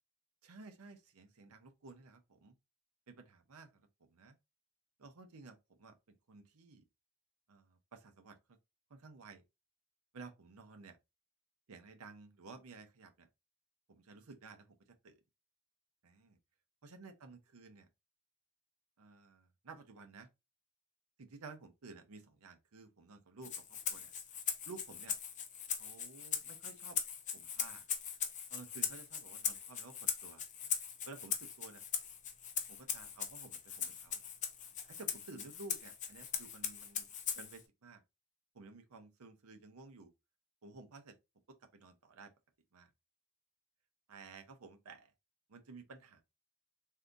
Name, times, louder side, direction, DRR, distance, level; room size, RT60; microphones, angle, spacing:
voice 1, 0.4-2.6 3.1-4.4 5.0-6.8 7.5-8.6 8.9-9.4 10.1-11.0 11.7-13.3 13.9-14.7 15.0-15.2 16.0-16.4 16.8-17.9 19.0-20.3 21.2-24.1 24.7-25.2 25.8-27.0 27.3-27.8 28.5-30.4 31.0-31.8 32.7-34.2 34.8-37.1 37.4-38.0 38.5-40.1 40.6-41.2 41.5-42.3 42.7-42.9 44.1-45.1 45.5-46.2, right 3 dB, 85° right, 0.7 m, -54 dB
Rattle (instrument), 23.4-37.6, left 8 dB, 35° left, 0.5 m, -40 dB
3.6 x 2.7 x 2.5 m
head